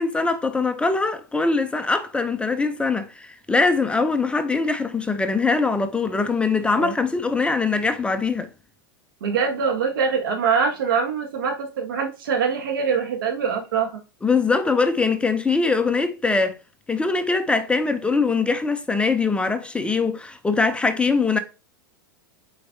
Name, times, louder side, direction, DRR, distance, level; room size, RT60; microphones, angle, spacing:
voice 1, 0.0-8.5 14.2-16.6 16.9-21.4, left 4 dB, 10° left, 0.5 m, -22 dB
voice 2, 9.2-14.0, right 6 dB, 75° right, 1.7 m, -23 dB
7.7 x 4.5 x 2.7 m
hypercardioid pair, 115°, 12 cm